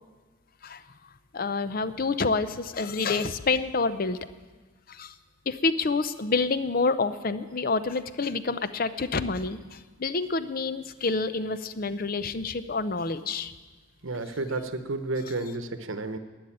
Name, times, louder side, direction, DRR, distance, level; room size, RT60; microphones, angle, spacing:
voice 1, 1.3-4.2 4.9-5.1 5.5-13.5, left 4 dB, 45° left, 12 dB, 0.6 m, -28 dB
voice 2, 14.0-16.2, right 2 dB, 70° right, 9 dB, 0.9 m, -31 dB
12.0 x 9.4 x 8.7 m, 1.3 s
head